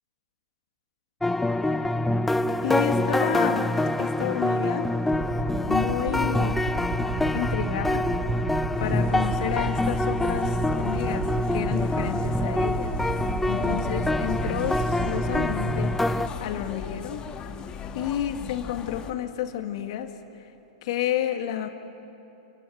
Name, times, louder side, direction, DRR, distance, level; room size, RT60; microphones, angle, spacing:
sound 1, 1.2-16.3, left 1 dB, 5° left, 0.6 m, -26 dB
voice 1, 2.6-4.9 5.7-6.6 7.3-8.1 8.8-17.2 17.9-20.1 20.8-21.7, left 10 dB, 60° left, 6 dB, 2.0 m, -31 dB
Aircraft, 5.1-15.7, right 4 dB, 40° right, 3.9 m, -33 dB
sound 2, 8.7-19.1, left 6 dB, 25° left, 1.4 m, -38 dB
28.0 x 16.5 x 9.4 m, 2.8 s
hypercardioid pair, 115°, 3 cm